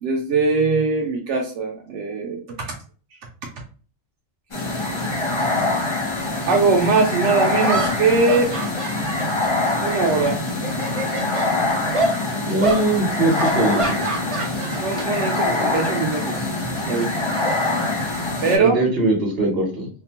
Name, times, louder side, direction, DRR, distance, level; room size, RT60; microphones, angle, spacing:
voice 1, 0.0-2.7 4.6-4.7 6.4-8.5 9.8-10.4 14.8-16.5 16.9-17.1 18.4-18.8, right 4 dB, 80° right, 0 dB, 0.9 m, -21 dB
sound 1, 4.5-18.6, left 2 dB, 30° left, 0.7 m, -24 dB
sound 2, 6.8-6.9 7.6-10.2 10.5-11.5 11.9-12.2 12.6-12.8 13.4-15.1 15.4-15.7 16.8-18.3, right 2 dB, 40° right, 0.5 m, -28 dB
voice 2, 12.5-14.1 18.4-19.9, right 2 dB, 60° right, 0 dB, 1.2 m, -21 dB
2.8 x 2.1 x 2.8 m, 0.39 s
omnidirectional pair, 1.2 m